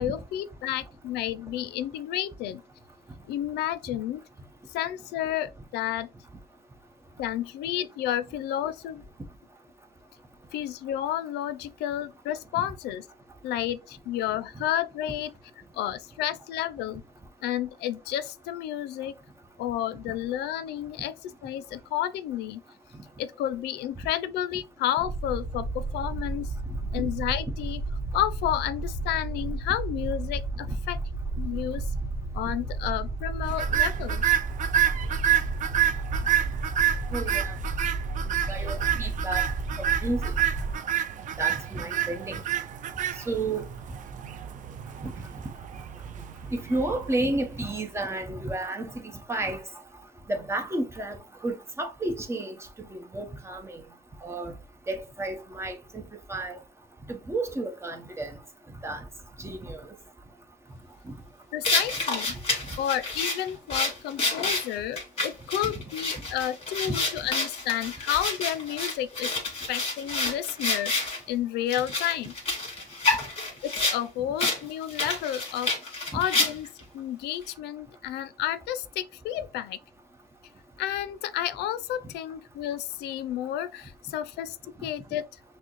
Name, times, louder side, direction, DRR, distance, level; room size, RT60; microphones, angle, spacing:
voice 1, 0.0-2.6 3.3-4.2 4.7-6.1 7.2-9.0 10.5-13.0 13.4-15.3 15.7-17.0 17.4-19.1 19.6-22.6 23.2-26.5 26.9-27.8 28.1-31.0 31.4-31.9 32.3-34.2 61.5-62.4 62.8-69.3 69.7-72.3 73.6-79.8 80.8-84.6 84.8-85.2, left 12 dB, 80° left, 0.4 m, -31 dB
sound 1, 25.0-40.7, right 2 dB, 85° right, 1.1 m, -32 dB
sound 2, 33.5-47.8, right 11 dB, 50° right, 0.4 m, -29 dB
voice 2, 37.1-37.5 38.5-39.5 39.7-40.3 41.4-42.4 43.3-43.6 45.0-45.1 46.5-49.6 50.3-51.2 51.4-52.5 52.9-53.8 54.2-54.5 54.9-56.0 56.3-56.6 57.1-58.3 58.8-59.0 59.4-59.8 65.6-65.7 76.1-76.2, right 2 dB, 15° right, 0.8 m, -31 dB
sound 3, 61.6-71.2 71.7-74.0 74.4-74.6 74.9-76.8, left 3 dB, 35° left, 2.1 m, -28 dB
6.0 x 2.1 x 3.0 m
cardioid pair, 110°, 17 cm